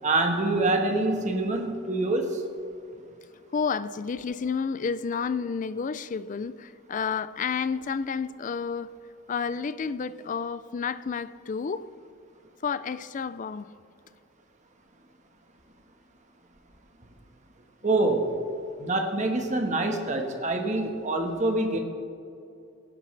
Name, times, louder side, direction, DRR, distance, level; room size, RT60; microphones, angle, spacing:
voice 1, 0.0-2.4 17.8-18.4 18.8-21.8, right 2 dB, 40° right, 1.4 m, -25 dB
voice 2, 3.5-8.9 9.3-11.9 12.6-13.7, left 5 dB, 40° left, 0.4 m, -30 dB
18.5 x 11.0 x 3.3 m
head